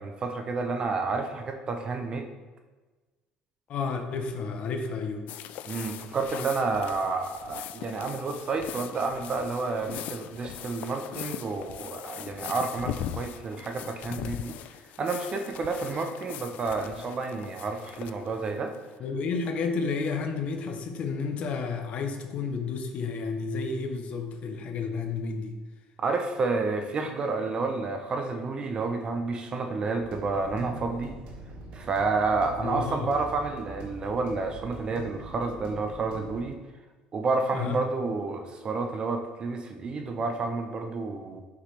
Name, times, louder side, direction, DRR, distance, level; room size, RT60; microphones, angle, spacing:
voice 1, 0.0-2.3 5.7-14.6 15.0-18.7 26.0-31.1 31.7-36.6 37.1-41.4, right 3 dB, 35° right, 5 dB, 0.7 m, -30 dB
voice 2, 3.7-5.3 19.0-25.6 32.6-33.1 37.5-37.8, left 4 dB, 50° left, 5 dB, 0.9 m, -31 dB
sound 1, 5.3-18.9, left 11 dB, 65° left, 0.3 m, -40 dB
sound 2, 30.0-36.4, right 2 dB, 65° right, 1.6 m, -43 dB
5.9 x 5.7 x 3.3 m, 1.2 s
cardioid pair, 125°, 3 cm